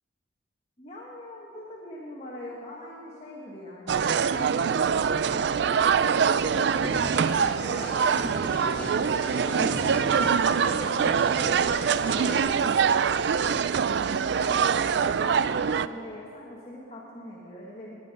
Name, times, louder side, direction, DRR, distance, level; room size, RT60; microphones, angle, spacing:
voice 1, 0.8-8.4 8.8-11.6 12.0-18.0, left 1 dB, 30° left, -4 dB, 1.5 m, -42 dB
sound 1, 3.9-15.9, right 6 dB, 60° right, 0.3 m, -24 dB
sound 2, 6.8-12.4, equal, 10° left, 3.5 m, -37 dB
20.0 x 10.0 x 5.2 m, 2.7 s
head